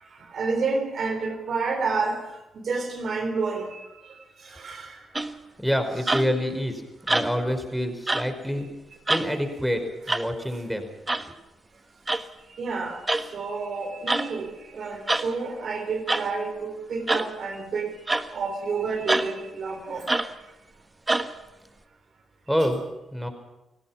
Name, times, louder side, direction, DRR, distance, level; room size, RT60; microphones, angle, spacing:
voice 1, 0.0-2.3 2.5-5.1 12.5-18.0 18.3-20.1, right 4 dB, 55° right, 3.5 m, -30 dB
sound 1, 5.2-5.5 6.1-6.5 7.1-7.5 8.1-8.3 9.1-9.3 10.1-10.3 11.1-11.3 12.1-12.3 13.1-13.3 14.1-14.3 15.1-15.3 16.1-16.3 17.1-17.3 18.1-18.3 19.1-19.3 20.1-20.3 21.1-21.3, right 2 dB, 20° right, 1.5 m, -25 dB
voice 2, 5.6-6.8 7.1-8.7 9.1-9.8 10.1-10.9 22.5-22.8 23.1-23.3, equal, ahead, 5.0 m, -26 dB
30.0 x 17.5 x 6.1 m
hypercardioid pair, 45°, 0 cm